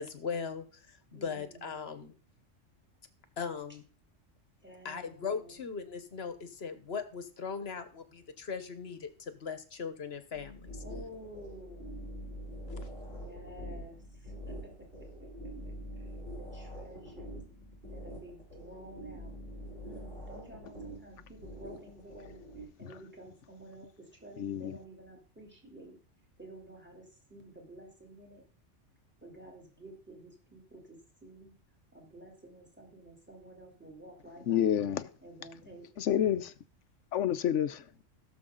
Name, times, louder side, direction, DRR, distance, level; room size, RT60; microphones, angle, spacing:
voice 1, 0.0-2.1 3.4-3.8 4.8-10.8, left 5 dB, 55° left, 11 dB, 1.3 m, -39 dB
voice 2, 1.1-2.1 4.6-5.6 10.8-12.0 13.1-14.7 15.2-16.1 16.4-17.4 17.9-19.3 19.8-26.0 26.4-28.4 29.2-31.5 31.9-34.7 35.2-35.9, right 1 dB, 10° right, 0 dB, 3.3 m, -51 dB
sound 1, 10.3-22.6, equal, 40° right, 4.8 m, -44 dB
voice 3, 24.4-24.8 34.5-35.1 36.0-36.5 37.1-37.8, left 10 dB, 70° left, 14 dB, 1.0 m, -29 dB
16.5 x 7.0 x 3.8 m, 0.42 s
omnidirectional pair, 1.3 m